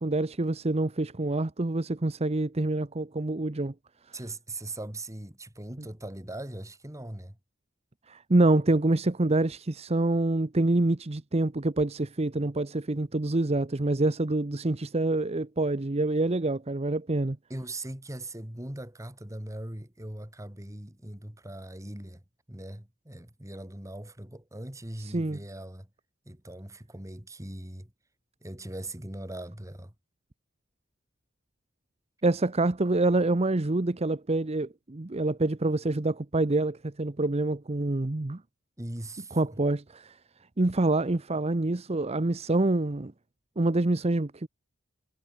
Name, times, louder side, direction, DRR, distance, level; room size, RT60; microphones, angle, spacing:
voice 1, 0.0-3.7 4.1-4.2 8.1-17.4 25.0-25.4 32.2-38.4 39.3-40.2 40.6-43.1 43.6-44.5, right 2 dB, 30° right, 0.8 m, -26 dB
voice 2, 4.1-7.4 17.5-22.2 22.5-25.9 26.3-27.9 28.4-29.9 38.8-39.4, right 1 dB, 15° right, 2.3 m, -40 dB
head